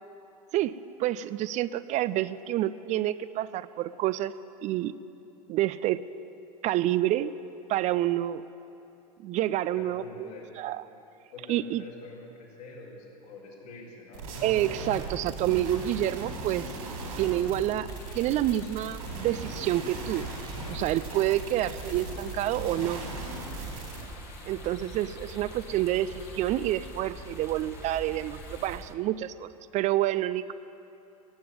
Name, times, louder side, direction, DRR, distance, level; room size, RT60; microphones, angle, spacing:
voice 1, 0.5-4.3 4.6-4.9 5.5-6.1 6.6-7.3 7.7-8.4 9.2-10.3 10.6-10.8 11.5-11.8 14.4-16.7 17.2-17.9 18.1-20.3 20.7-23.0 24.4-30.5, right 13 dB, 35° right, 15 dB, 0.4 m, -28 dB
voice 2, 9.7-10.5 11.3-14.3, left 3 dB, 75° left, -4 dB, 4.1 m, -46 dB
sound 1, 14.1-24.0, right 3 dB, 75° right, 3.9 m, -38 dB
sound 2, 17.9-28.8, left 5 dB, 50° left, 1.7 m, -48 dB
sound 3, 22.9-28.9, right 3 dB, 15° right, 1.0 m, -45 dB
16.5 x 7.6 x 9.5 m, 2.8 s
hypercardioid pair, 90°, 20 cm